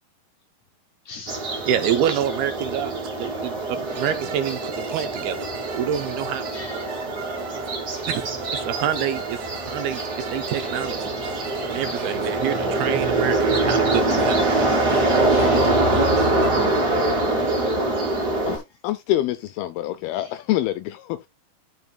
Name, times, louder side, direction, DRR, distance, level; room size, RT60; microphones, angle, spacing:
voice 1, 1.1-1.4 4.9-5.0 6.5-7.4 7.9-8.1 11.6-11.7 12.1-12.3 15.3-15.8 20.2-20.3, left 4 dB, 60° left, 2.1 m, -42 dB
sound 1, 1.3-18.6, right 2 dB, 25° right, 2.7 m, -24 dB
voice 2, 1.7-6.5 8.1-10.0 10.3-11.1 11.7-14.4, right 9 dB, 80° right, 2.5 m, -27 dB
sound 2, 3.9-16.5, right 5 dB, 60° right, 2.2 m, -39 dB
voice 3, 18.5-21.3, left 14 dB, 85° left, 2.2 m, -26 dB
12.0 x 5.6 x 2.2 m
omnidirectional pair, 4.8 m